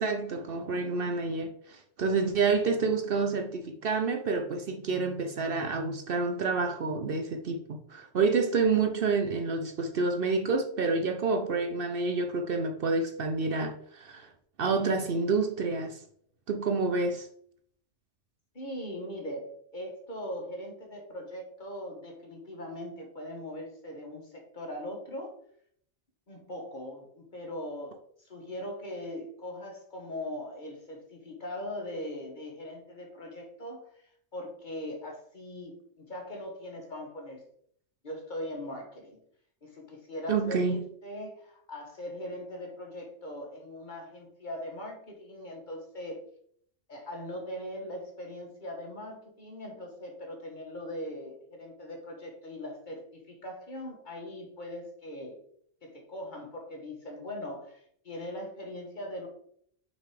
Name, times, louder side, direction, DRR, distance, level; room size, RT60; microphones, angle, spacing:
voice 1, 0.0-14.3 14.6-16.0 16.5-17.3 40.3-40.8, right 4 dB, 55° right, 0.8 m, -28 dB
voice 2, 18.5-25.3 26.3-37.4 38.0-39.2 39.6-46.2 46.9-55.4 55.8-59.3, left 1 dB, 40° left, 1.5 m, -40 dB
6.2 x 4.1 x 4.9 m
omnidirectional pair, 1.2 m